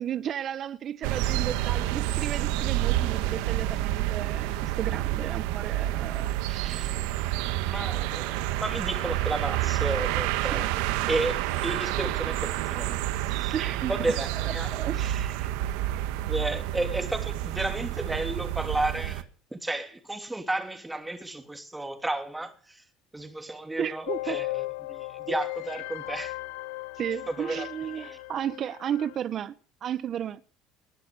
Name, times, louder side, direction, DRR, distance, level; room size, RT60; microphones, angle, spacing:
voice 1, 0.0-7.0 10.5-10.6 11.0-11.1 13.5-14.0 14.3-15.6 23.8-24.4 25.3-25.4 26.9-29.5 29.8-30.4, right 9 dB, 45° right, 1.1 m, -34 dB
sound 1, 1.0-19.2, right 14 dB, 80° right, 1.4 m, -29 dB
voice 2, 7.7-10.7 11.1-13.0 13.3-13.5 13.9-14.7 16.3-19.2 19.5-22.8 23.1-26.3 27.3-27.7 27.9-28.2, right 2 dB, 10° right, 3.2 m, -32 dB
sound 2, 24.1-29.2, left 20 dB, 90° left, 0.7 m, -36 dB
20.0 x 10.5 x 6.7 m
supercardioid pair, 105°, 0 cm